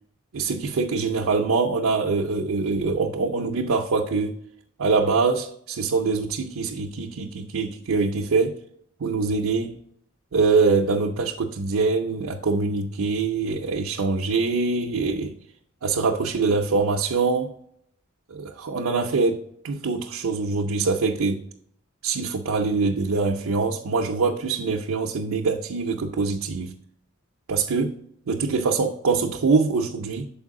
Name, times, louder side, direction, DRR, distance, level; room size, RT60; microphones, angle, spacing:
voice 1, 0.3-4.4 4.8-8.6 9.0-9.8 10.3-15.4 15.8-17.5 18.3-21.4 22.0-26.8 27.5-28.0 28.3-30.3, right 4 dB, 85° right, 0.6 m, -24 dB
7.0 x 4.6 x 3.6 m
head